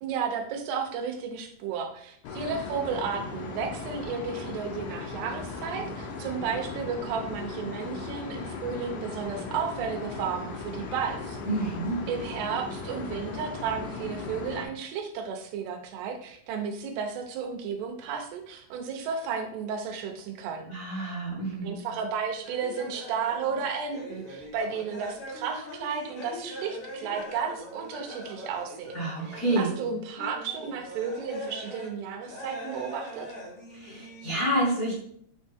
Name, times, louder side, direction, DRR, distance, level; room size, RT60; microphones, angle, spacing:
voice 1, 0.0-11.4 12.1-21.1 21.6-33.3, right 6 dB, 85° right, 4 dB, 2.9 m, -33 dB
sound 1, 2.2-14.7, left 4 dB, 80° left, 3.0 m, -37 dB
voice 2, 11.4-12.1 20.7-21.8 28.9-29.7 33.7-34.9, right 1 dB, 35° left, -8 dB, 1.4 m, -28 dB
sound 2, 22.4-29.8 30.1-31.9 32.2-34.3, equal, 60° left, 3.3 m, -42 dB
8.9 x 3.2 x 3.5 m, 0.66 s
omnidirectional pair, 4.6 m